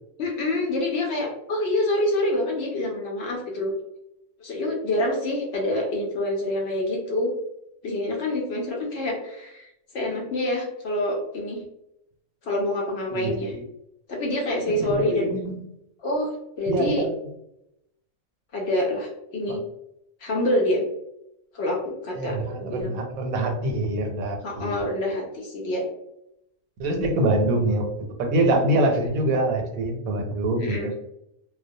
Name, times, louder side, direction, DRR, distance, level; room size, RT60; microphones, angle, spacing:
voice 1, 0.2-3.7 4.4-7.3 7.8-9.7 9.9-11.6 12.4-13.5 14.1-15.3 16.0-17.1 18.5-19.6 20.2-20.8 21.5-23.0 24.4-25.9 27.2-27.3 30.6-30.9, left 1 dB, 65° left, -1 dB, 0.7 m, -26 dB
voice 2, 13.1-13.6 14.8-15.6 16.7-17.1 19.5-19.6 22.2-24.8 26.8-27.9 28.2-30.9, right 1 dB, 85° right, 3 dB, 1.0 m, -25 dB
2.3 x 2.1 x 2.6 m, 0.81 s
omnidirectional pair, 1.4 m